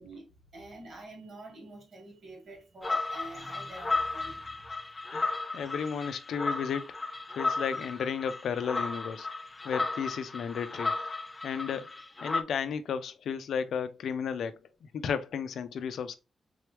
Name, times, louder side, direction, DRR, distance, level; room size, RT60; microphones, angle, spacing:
voice 1, 0.0-4.8, right 2 dB, 45° right, 1.9 m, -47 dB
sound 1, 2.8-12.4, left 3 dB, 20° left, 0.4 m, -34 dB
voice 2, 5.1-6.9 7.4-9.3 9.6-10.9 11.4-11.9 12.2-16.2, left 7 dB, 75° left, 0.5 m, -33 dB
3.8 x 3.1 x 3.4 m
wide cardioid pair, 145°, 0 cm